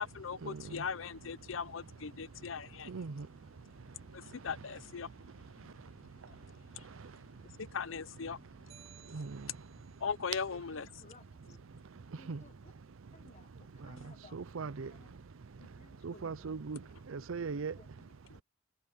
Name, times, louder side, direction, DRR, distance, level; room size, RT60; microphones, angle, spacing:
voice 1, 0.0-2.9 4.1-5.1 7.6-8.4 10.0-10.9, left 6 dB, 75° left, 0.6 m, -39 dB
sound 1, 8.7-10.1, right 9 dB, 30° right, 2.4 m, -59 dB
voice 2, 10.4-11.6 12.2-12.7 13.1-14.4 14.9-15.2 15.6-16.6 17.8-18.4, left 3 dB, 35° left, 1.0 m, -60 dB
voice 3, 14.3-14.9 16.0-16.8 17.1-17.7, right 5 dB, 85° right, 0.6 m, -38 dB
head